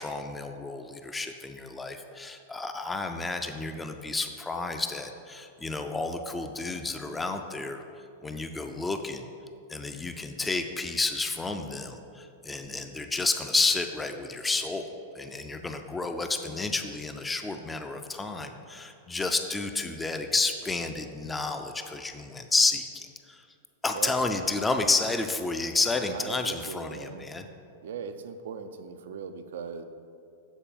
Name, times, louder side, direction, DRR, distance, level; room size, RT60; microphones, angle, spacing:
voice 1, 0.0-7.8 8.2-9.3 9.7-14.9 15.1-23.4 23.8-27.5, left 3 dB, 10° left, 6 dB, 0.4 m, -30 dB
voice 2, 26.1-27.3 27.8-29.8, right 6 dB, 60° right, 9 dB, 0.4 m, -39 dB
7.2 x 4.0 x 5.2 m, 2.5 s
figure-of-eight pair, 95°, 0 cm